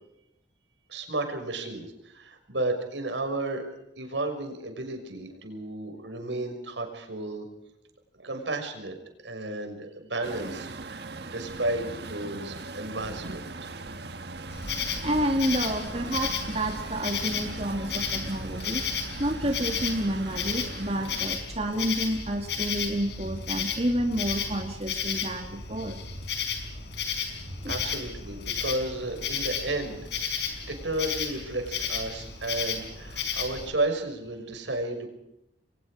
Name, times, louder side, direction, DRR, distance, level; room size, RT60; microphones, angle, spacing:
voice 1, 0.9-3.7 4.0-7.5 8.2-9.0 9.2-13.7 27.7-30.0 30.7-35.1, right 2 dB, 90° right, 5 dB, 6.1 m, -33 dB
Truck, 10.2-21.3, right 3 dB, 65° right, 1.5 m, -39 dB
Insect, 14.5-33.7, left 6 dB, 70° left, 5.3 m, -33 dB
voice 2, 15.0-18.8 19.2-26.0 27.5-27.7, right 1 dB, 35° right, 3 dB, 2.5 m, -29 dB
29.5 x 23.0 x 5.0 m, 0.82 s
head